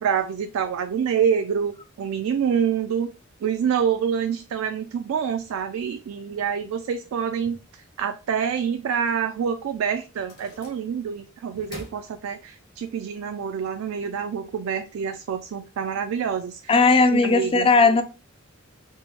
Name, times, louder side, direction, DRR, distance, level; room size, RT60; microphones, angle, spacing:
voice 1, 0.0-3.1 3.4-7.6 8.0-16.7 17.1-17.7, right 7 dB, 75° right, 0.3 m, -26 dB
sound 1, 10.1-11.1 11.5-12.8, left 1 dB, 50° left, 1.2 m, -45 dB
voice 2, 16.7-18.0, left 4 dB, 25° left, 0.4 m, -17 dB
4.3 x 2.0 x 2.9 m
head